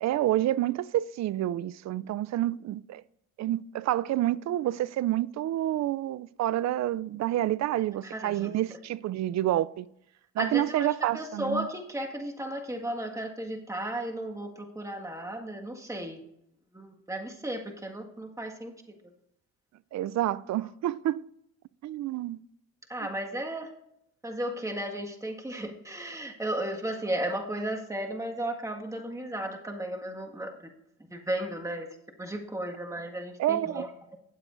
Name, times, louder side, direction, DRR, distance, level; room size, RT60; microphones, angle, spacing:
voice 1, 0.0-3.0 3.4-9.9 10.4-11.7 19.9-21.2 21.8-22.4 33.4-33.8, right 13 dB, 50° right, 0.4 m, -28 dB
voice 2, 8.0-8.5 10.4-16.2 16.7-18.7 22.9-23.7 24.2-30.5 31.1-31.9 32.2-33.9, right 1 dB, 10° right, 1.7 m, -34 dB
18.0 x 7.7 x 2.6 m
supercardioid pair, 65°, 35 cm